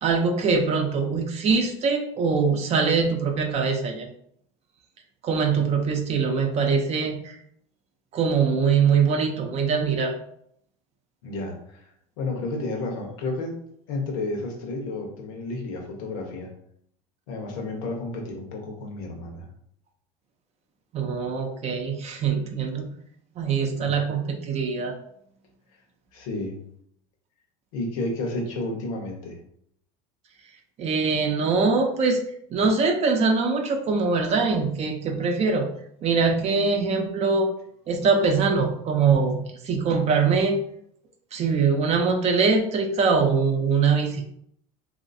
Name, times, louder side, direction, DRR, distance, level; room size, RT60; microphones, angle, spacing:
voice 1, 0.0-4.1 5.2-7.4 8.1-10.1 20.9-22.9 23.4-24.9 30.8-32.2 32.5-35.7 36.0-37.5 37.9-40.6 41.3-44.3, right 5 dB, 40° right, 4 dB, 0.6 m, -23 dB
voice 2, 11.2-11.9 12.2-13.6 13.9-16.5 17.3-19.5 23.7-24.0 26.1-26.6 27.7-29.4, left 2 dB, 80° left, 1 dB, 1.0 m, -31 dB
3.1 x 2.7 x 2.6 m, 0.68 s
supercardioid pair, 105°, 17 cm